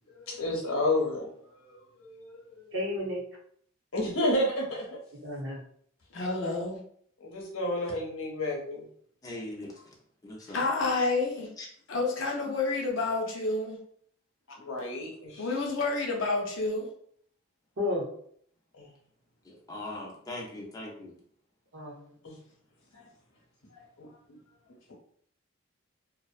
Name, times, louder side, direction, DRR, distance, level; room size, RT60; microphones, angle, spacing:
voice 1, 0.1-2.4 2.7-2.8 3.9-4.9 7.2-8.9 14.6-15.5 18.8-18.9 22.2-22.4 22.9-23.0 24.0-24.4, left 1 dB, 90° left, -2 dB, 0.9 m, -31 dB
voice 2, 2.7-3.2 5.2-5.6 17.8-18.0 21.7-22.1, left 1 dB, 60° right, -3 dB, 0.8 m, -32 dB
voice 3, 6.1-6.8 10.5-11.5 11.9-13.8 15.4-16.9, left 3 dB, 60° left, -1 dB, 0.6 m, -29 dB
voice 4, 9.2-9.8 10.2-10.7 11.6-11.7 19.4-21.2, left 1 dB, 15° left, -3 dB, 0.5 m, -40 dB
2.5 x 2.1 x 2.4 m, 0.63 s
head